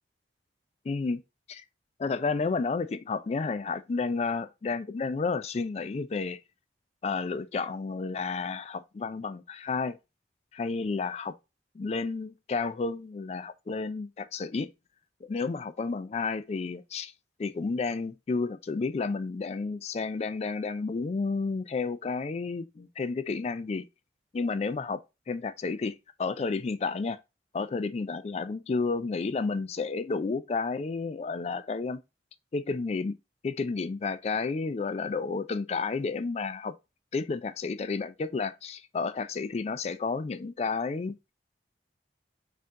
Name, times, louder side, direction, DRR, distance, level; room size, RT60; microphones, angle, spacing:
voice 1, 0.9-1.2 1.5-1.6 2.0-6.4 7.0-10.0 10.5-11.3 11.8-14.7 15.3-17.1 17.4-23.9 24.3-25.0 25.3-27.2 27.5-32.0 32.5-33.2 33.4-36.7 37.1-41.1, left 4 dB, 35° left, 0.3 m, -31 dB
4.3 x 2.6 x 3.6 m
head